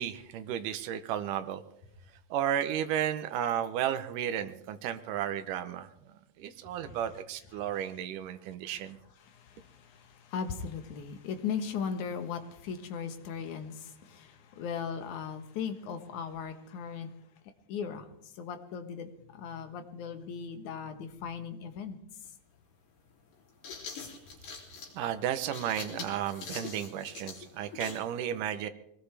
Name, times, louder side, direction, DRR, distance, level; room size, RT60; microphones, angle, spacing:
voice 1, 0.0-1.6 2.3-5.9 6.4-9.0 25.0-28.7, right 10 dB, 85° right, 2.4 m, -33 dB
voice 2, 9.2-17.1 17.7-22.0, left 6 dB, 70° left, 2.6 m, -38 dB
sound 1, 22.2-22.3 23.3-28.1, left 5 dB, 90° left, 4.6 m, -43 dB
22.5 x 19.0 x 3.4 m
omnidirectional pair, 3.6 m